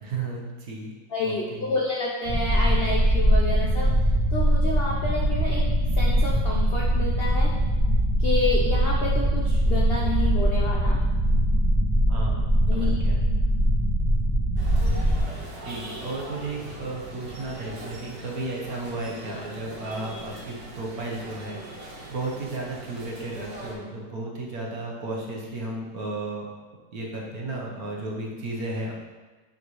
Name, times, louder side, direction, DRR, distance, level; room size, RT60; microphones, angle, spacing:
voice 1, 0.0-0.9 1.2-1.7 12.1-13.2 15.6-26.5 26.9-28.9, right 2 dB, 60° right, -2 dB, 1.4 m, -34 dB
voice 2, 1.1-3.9 4.3-5.6 6.0-7.5 8.2-11.0 12.7-13.0, left 3 dB, 80° left, -2 dB, 0.5 m, -29 dB
sound 1, 2.2-15.2, right 1 dB, 30° right, 1.1 m, -22 dB
sound 2, 14.6-23.7, right 1 dB, 90° right, 1.8 m, -40 dB
8.7 x 4.0 x 3.0 m, 1.3 s
omnidirectional pair, 1.9 m